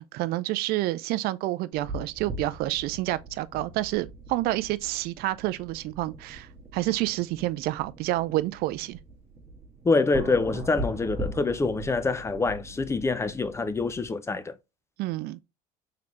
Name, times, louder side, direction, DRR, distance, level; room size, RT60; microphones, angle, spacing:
voice 1, 0.0-9.0 15.0-15.4, right 17 dB, 60° right, 0.4 m, -29 dB
sound 1, 1.8-14.1, right 2 dB, 20° right, 1.3 m, -41 dB
voice 2, 9.8-14.5, left 3 dB, 15° left, 0.5 m, -26 dB
3.8 x 3.3 x 3.0 m
supercardioid pair, 95°, 19 cm